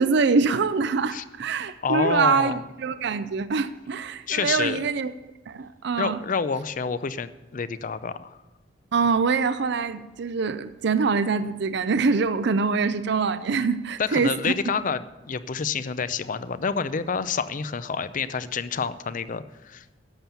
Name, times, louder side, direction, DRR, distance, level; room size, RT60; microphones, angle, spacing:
voice 1, 0.0-5.1 5.5-6.2 8.9-14.3, right 4 dB, 65° right, 13 dB, 0.5 m, -24 dB
voice 2, 1.8-2.6 4.3-4.8 6.0-8.4 14.0-19.8, left 5 dB, 45° left, 14 dB, 0.5 m, -28 dB
11.5 x 7.2 x 6.9 m, 1.1 s
head